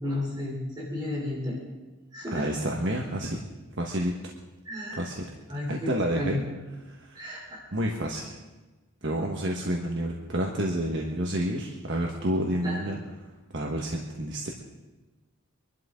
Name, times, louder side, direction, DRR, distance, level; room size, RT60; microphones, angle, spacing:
voice 1, 0.0-1.6 2.1-2.5 4.6-5.0 5.5-6.4 7.1-7.6 12.6-12.9, left 1 dB, 20° right, -5 dB, 3.4 m, -32 dB
voice 2, 2.3-3.4 3.8-4.1 5.0-5.2 5.7-6.4 6.8-7.4 7.7-8.4 9.0-13.0 13.5-14.5, right 1 dB, 55° right, 0 dB, 1.4 m, -29 dB
25.0 x 12.0 x 3.8 m, 1.2 s
head